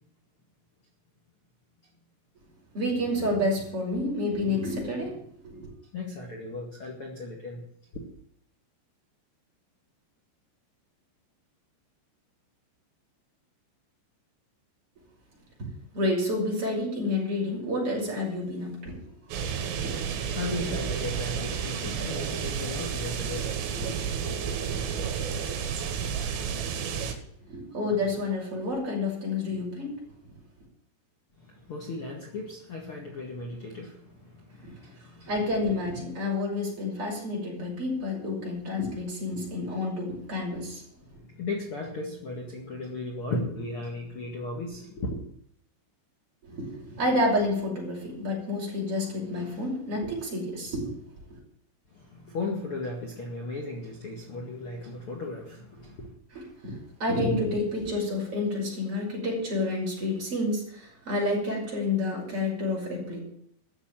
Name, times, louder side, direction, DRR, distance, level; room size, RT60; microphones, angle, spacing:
voice 1, 2.7-5.2 5.4-5.6 15.9-18.9 27.5-29.9 35.3-40.8 46.4-50.9 56.3-56.7 57.0-63.2, left 2 dB, 30° right, -3 dB, 6.2 m, -29 dB
voice 2, 5.9-7.6 7.9-8.0 20.3-24.0 31.4-35.3 41.0-45.2 51.9-56.1, left 2 dB, 75° left, -1 dB, 1.2 m, -36 dB
sound 1, 19.3-27.1, right 7 dB, 75° right, 4.4 m, -31 dB
14.0 x 7.3 x 9.0 m, 0.69 s
omnidirectional pair, 5.9 m